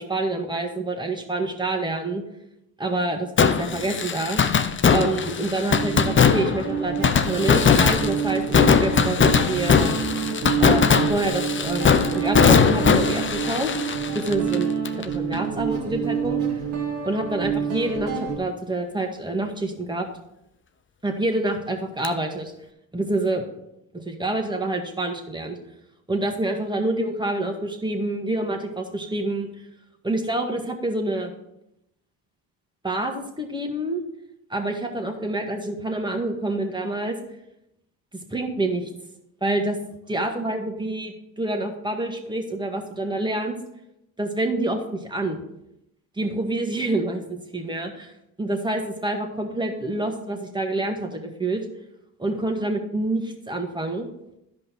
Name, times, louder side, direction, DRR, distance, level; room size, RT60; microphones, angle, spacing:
voice 1, 0.0-2.2 2.8-4.4 4.9-9.9 10.6-13.7 14.1-16.4 17.0-20.1 21.0-22.5 22.9-23.4 23.9-25.5 26.1-29.5 30.0-31.3 32.8-34.0 34.5-37.2 38.3-38.9 39.4-39.8 40.1-43.6 44.2-45.4 46.2-48.1 48.4-51.6 52.2-54.1, right 2 dB, 10° right, 3 dB, 1.9 m, -27 dB
Fireworks, 3.4-15.0 15.3-15.4 22.0-22.1, left 6 dB, 30° left, 0.7 m, -20 dB
Guitar, 5.7-18.4, right 7 dB, 85° right, 2.1 m, -28 dB
12.0 x 5.3 x 4.5 m, 0.82 s
supercardioid pair, 65°, 43 cm